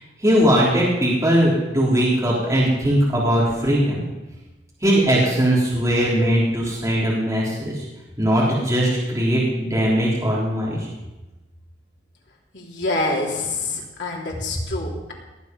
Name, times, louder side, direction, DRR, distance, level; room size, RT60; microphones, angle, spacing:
voice 1, 0.2-4.0 4.8-7.7 8.2-10.8, equal, 15° right, -6 dB, 3.7 m, -19 dB
voice 2, 12.5-15.1, left 2 dB, 70° left, -2 dB, 3.4 m, -26 dB
19.0 x 9.4 x 5.4 m, 1.1 s
head